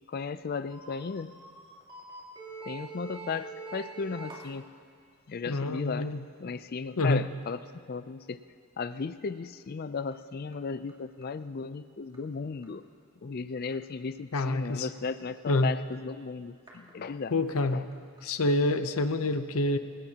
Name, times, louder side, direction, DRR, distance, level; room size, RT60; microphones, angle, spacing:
voice 1, 0.1-1.3 2.6-4.7 5.3-6.1 6.4-7.6 7.9-8.4 8.8-12.8 13.2-17.3 17.7-17.9, left 5 dB, 45° left, 12 dB, 0.4 m, -35 dB
sound 1, 0.7-4.5 7.4-7.5 8.2-8.3 10.1-10.2 10.5-10.6 10.9-11.0 11.2-11.3 12.1-12.2 12.6-12.7 13.7-13.8 16.7-16.9 17.9-18.0 18.2-18.3 18.5-18.6, right 4 dB, 20° right, 3.0 m, -44 dB
voice 2, 5.5-6.2 7.0-7.3 14.3-14.9 15.5-15.7 17.3-17.8 18.2-19.8, left 2 dB, 75° left, 10 dB, 0.7 m, -27 dB
27.0 x 17.5 x 2.9 m, 2.2 s
head